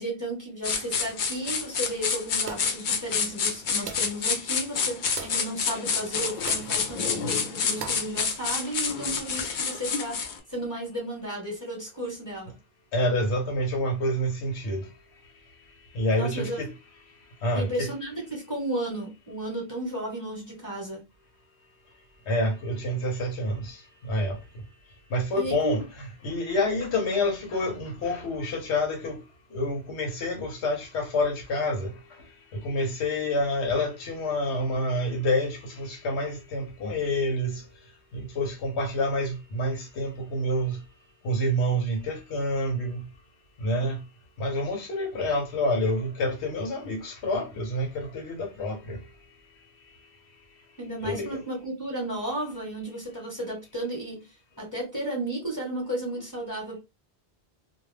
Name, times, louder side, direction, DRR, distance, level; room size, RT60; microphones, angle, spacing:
voice 1, 0.0-12.5 16.2-16.6 17.5-21.0 25.3-25.8 50.8-54.2 54.6-56.8, right 1 dB, 20° left, 1.0 m, -33 dB
sound 1, 0.6-10.4, left 5 dB, 55° left, 0.6 m, -28 dB
sound 2, 2.5-2.8 3.9-4.2 5.2-5.5 6.5-6.7 7.8-8.1, right 7 dB, 75° right, 0.8 m, -38 dB
voice 2, 12.9-14.8 15.9-16.7 17.4-17.9 22.3-23.8 24.1-24.4 25.1-29.2 29.5-31.9 32.6-37.6 38.1-40.8 41.2-43.0 43.6-44.0 44.4-49.0 51.0-51.4, left 1 dB, 85° left, 1.0 m, -28 dB
2.3 x 2.2 x 3.2 m
omnidirectional pair, 1.1 m